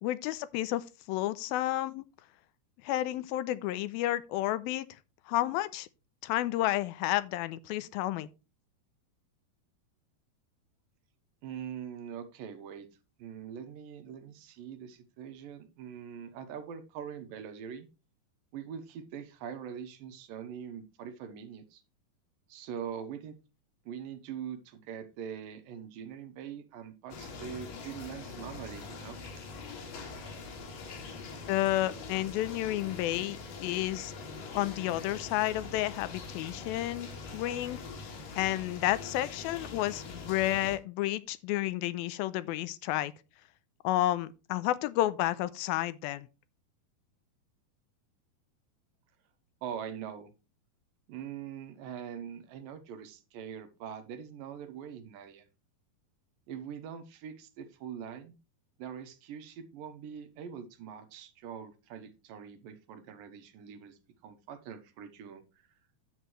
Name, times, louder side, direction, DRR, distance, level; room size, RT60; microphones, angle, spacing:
voice 1, 0.0-2.0 2.8-4.9 5.3-5.9 6.2-8.3 31.5-34.1 34.6-37.8 38.4-43.1 43.8-46.3, left 15 dB, 85° left, 2.4 m, -31 dB
voice 2, 11.4-12.9 13.2-17.9 18.5-21.8 22.5-23.4 23.9-29.2 49.6-50.3 51.1-55.4 56.5-58.4 58.8-65.4, right 8 dB, 75° right, 2.6 m, -43 dB
sound 1, 27.1-40.8, left 4 dB, 65° left, 3.6 m, -43 dB
10.0 x 8.0 x 3.1 m
omnidirectional pair, 4.3 m